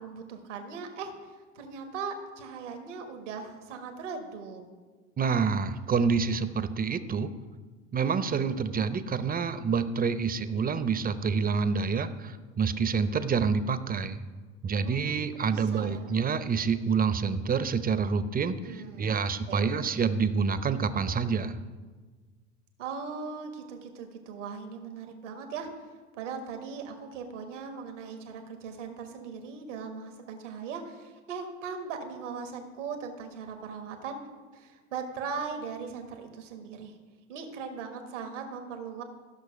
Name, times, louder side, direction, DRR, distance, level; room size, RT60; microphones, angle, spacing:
voice 1, 0.0-4.6 14.8-15.1 15.4-16.2 18.6-19.8 22.8-25.7 26.1-34.2 34.5-37.0 37.3-39.0, right 5 dB, 80° right, 5 dB, 1.4 m, -39 dB
voice 2, 5.2-7.3 7.9-14.2 14.6-21.6, right 5 dB, 25° right, 13 dB, 0.7 m, -27 dB
13.5 x 6.2 x 5.1 m, 1.4 s
hypercardioid pair, 70°, 36 cm